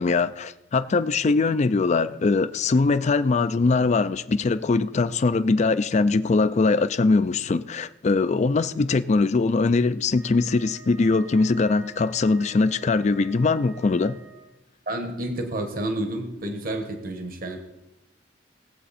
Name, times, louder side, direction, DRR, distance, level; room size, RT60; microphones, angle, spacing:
voice 1, 0.0-14.2, left 3 dB, 40° left, 0.4 m, -22 dB
Wind instrument woodwind instrument, 10.1-14.7, right 5 dB, 80° right, 2.6 m, -48 dB
voice 2, 14.9-17.6, right 1 dB, 50° right, 1.3 m, -30 dB
20.0 x 7.6 x 4.2 m
head